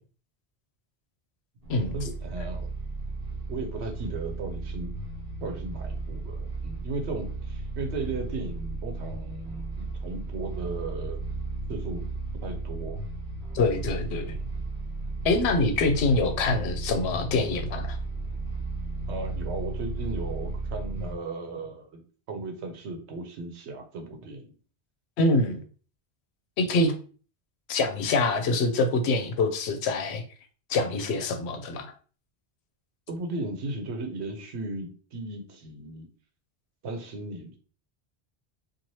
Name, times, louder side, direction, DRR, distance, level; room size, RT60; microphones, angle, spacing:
sound 1, 1.6-21.1, right 3 dB, 65° right, 0.8 m, -34 dB
voice 1, 1.9-2.7 3.5-4.9 5.4-11.2 11.7-12.1 12.4-13.0 14.2-14.6 19.1-22.0 22.3-24.5 33.1-36.1 36.8-37.6, right 3 dB, 90° right, 4 dB, 1.0 m, -36 dB
voice 2, 13.5-14.3 15.2-18.0 25.2-25.6 26.6-27.0 27.7-30.2 30.7-31.9, left 3 dB, 85° left, 7 dB, 0.8 m, -25 dB
3.0 x 2.4 x 2.7 m, 0.40 s
omnidirectional pair, 1.1 m